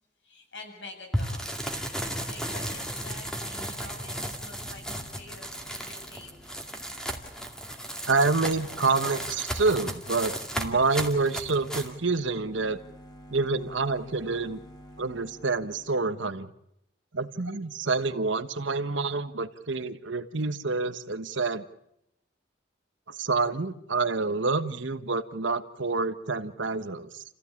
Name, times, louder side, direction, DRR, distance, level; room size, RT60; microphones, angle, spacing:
voice 1, 0.2-1.4 2.0-6.6, left 3 dB, 65° left, 3 dB, 7.7 m, -47 dB
sound 1, 1.1-11.9, equal, 5° left, 2.3 m, -35 dB
sound 2, 4.7-16.0, equal, 20° left, 4.2 m, -53 dB
voice 2, 8.1-12.8 13.3-14.6 15.0-16.5 17.1-21.6 23.1-27.2, right 3 dB, 80° right, 11 dB, 1.3 m, -27 dB
30.0 x 15.5 x 8.6 m, 0.80 s
head